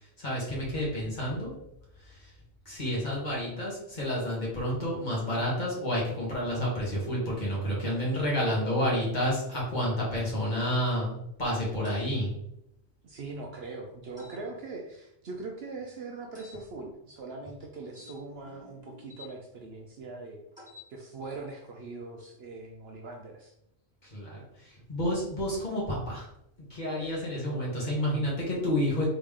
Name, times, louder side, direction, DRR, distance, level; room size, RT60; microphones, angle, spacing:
voice 1, 0.2-1.5 2.7-12.3 24.1-24.4 24.9-26.3 26.7-29.1, equal, 35° left, -5 dB, 1.7 m, -29 dB
sound 1, 11.8-12.1 14.2-14.4 16.3-16.6 17.9-19.3 20.5-20.9, left 4 dB, 5° right, 1.5 m, -50 dB
voice 2, 13.0-20.4 20.9-23.5, right 3 dB, 60° right, 1 dB, 0.8 m, -41 dB
3.9 x 3.3 x 3.6 m, 0.79 s
omnidirectional pair, 1.3 m